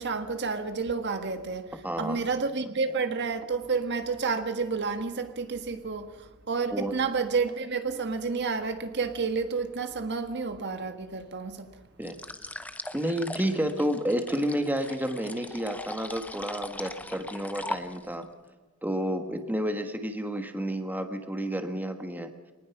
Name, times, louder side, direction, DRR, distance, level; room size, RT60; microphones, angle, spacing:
voice 1, 0.0-11.7, right 4 dB, 50° right, 1.5 m, -30 dB
voice 2, 1.8-2.2 6.7-6.9 12.0-12.1 12.9-18.3 18.8-22.3, equal, 10° right, 1.4 m, -30 dB
sound 1, 12.0-18.2, left 2 dB, 5° left, 0.8 m, -40 dB
25.0 x 19.5 x 5.9 m
head